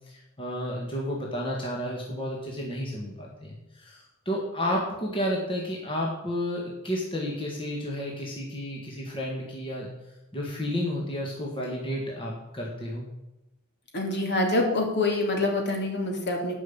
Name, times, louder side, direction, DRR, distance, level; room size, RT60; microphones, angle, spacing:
voice 1, 0.1-9.9 10.3-13.1, equal, 25° left, -2 dB, 1.8 m, -31 dB
voice 2, 13.9-16.5, left 2 dB, 50° left, 1 dB, 2.8 m, -26 dB
11.0 x 5.7 x 8.7 m, 0.96 s
head